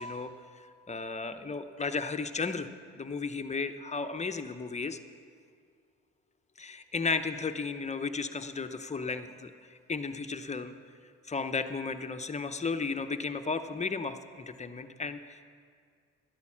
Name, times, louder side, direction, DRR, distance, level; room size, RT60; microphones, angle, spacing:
voice 1, 0.0-2.7 2.9-5.0 6.6-10.7 11.3-15.4, left 4 dB, 25° left, 8 dB, 0.7 m, -34 dB
12.0 x 9.4 x 7.2 m, 2.1 s
cardioid pair, 90°, 30 cm